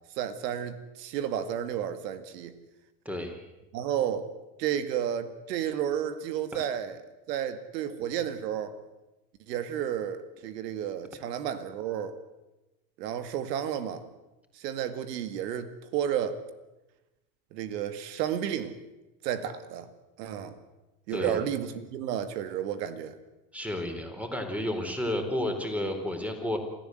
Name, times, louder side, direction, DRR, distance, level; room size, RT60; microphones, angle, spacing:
voice 1, 0.2-2.5 3.7-4.3 4.6-7.0 7.3-8.8 9.5-12.2 13.0-14.0 14.5-16.4 17.5-18.7 19.2-19.9 20.2-20.6 21.1-23.1, right 9 dB, 75° right, 2.2 m, -32 dB
voice 2, 3.0-3.5 6.5-6.6 21.1-21.4 23.5-26.6, left 1 dB, 5° right, 4.2 m, -31 dB
27.0 x 14.0 x 7.9 m
supercardioid pair, 105°, 49 cm